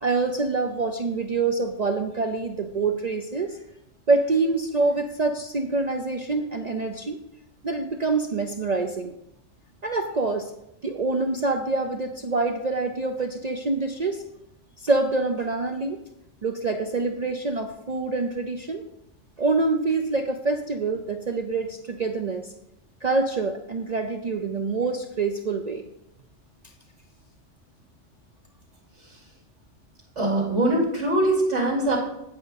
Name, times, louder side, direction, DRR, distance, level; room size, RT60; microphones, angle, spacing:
voice 1, 0.0-3.6 4.1-7.2 7.6-9.1 9.8-10.5 10.8-14.2 14.8-16.0 16.4-18.8 19.4-22.5 23.0-25.8, right 3 dB, 45° right, 5 dB, 0.6 m, -26 dB
voice 2, 30.2-32.0, right 1 dB, 70° right, -4 dB, 3.6 m, -22 dB
9.0 x 8.4 x 4.1 m, 0.84 s
omnidirectional pair, 1.2 m